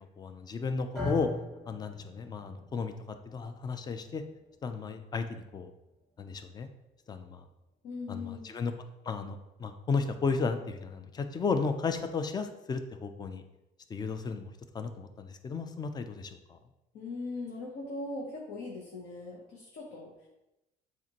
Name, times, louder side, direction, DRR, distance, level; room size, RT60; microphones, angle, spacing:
voice 1, 0.2-1.3 1.7-4.2 4.6-5.7 6.2-6.7 7.1-7.4 8.1-8.7 9.1-13.4 13.9-16.6, left 4 dB, 25° left, 8 dB, 0.4 m, -34 dB
sound 1, 0.9-9.2, left 1 dB, ahead, 1.1 m, -43 dB
voice 2, 7.8-8.5 16.9-20.3, left 3 dB, 70° left, -3 dB, 1.0 m, -40 dB
7.0 x 2.5 x 2.9 m, 0.93 s
cardioid pair, 110°, 17 cm